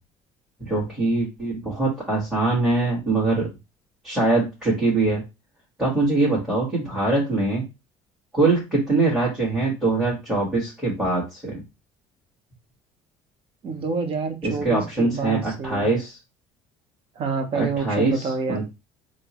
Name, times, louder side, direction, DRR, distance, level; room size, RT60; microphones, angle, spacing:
voice 1, 0.6-3.5 4.0-5.2 5.8-7.6 8.3-11.6 14.4-16.2 17.5-18.7, right 2 dB, 5° right, -5 dB, 1.5 m, -23 dB
voice 2, 13.6-15.9 17.2-18.6, right 4 dB, 45° right, 5 dB, 0.9 m, -27 dB
4.3 x 2.0 x 3.0 m, 0.26 s
cardioid pair, 115°, 13 cm